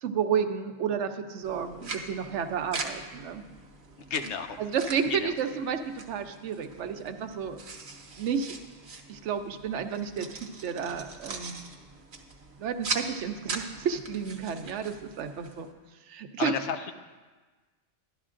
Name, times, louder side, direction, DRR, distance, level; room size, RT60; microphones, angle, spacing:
voice 1, 0.0-3.5 4.6-7.6 8.2-8.5 9.1-11.6 12.6-15.7 16.1-16.5, right 7 dB, 75° right, 8 dB, 0.9 m, -31 dB
sound 1, 1.4-15.7, right 3 dB, 45° right, 1.0 m, -41 dB
voice 2, 4.0-4.6 5.1-5.3 16.4-16.9, left 6 dB, 70° left, 8 dB, 0.9 m, -32 dB
12.0 x 12.0 x 2.5 m, 1.3 s
omnidirectional pair, 1.2 m